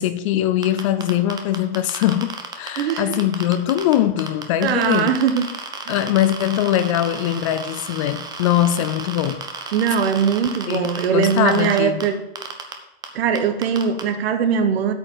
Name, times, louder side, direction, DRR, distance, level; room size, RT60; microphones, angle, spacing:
voice 1, 0.0-5.1 5.9-9.4 10.7-12.1, left 12 dB, 35° left, 0.4 m, -21 dB
sound 1, 0.6-3.9 4.2-12.1 12.4-12.7 13.0-13.1 13.4-14.0, right 5 dB, 10° right, 0.8 m, -32 dB
voice 2, 2.8-3.2 4.6-5.4 5.9-6.0 9.7-12.2 13.1-14.9, right 7 dB, 70° right, 1.3 m, -20 dB
8.6 x 5.0 x 7.3 m
supercardioid pair, 160°, 31 cm